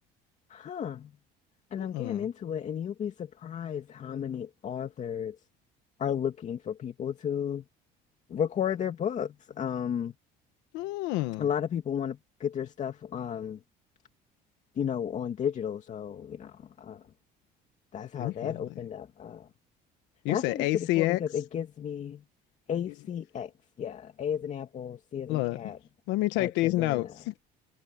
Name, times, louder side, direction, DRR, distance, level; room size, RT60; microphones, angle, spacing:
voice 1, 0.5-1.1 1.7-5.4 6.0-7.6 8.3-10.1 11.4-13.6 14.8-17.0 17.9-19.5 20.3-22.2 22.7-23.5 23.8-25.8 26.4-27.2, left 8 dB, 40° left, 2.4 m, -33 dB
voice 2, 1.8-2.3 10.7-11.5 18.2-18.5 20.2-21.2 25.3-25.7 26.1-27.5, left 18 dB, 85° left, 1.2 m, -28 dB
cardioid pair, 120°, 18 cm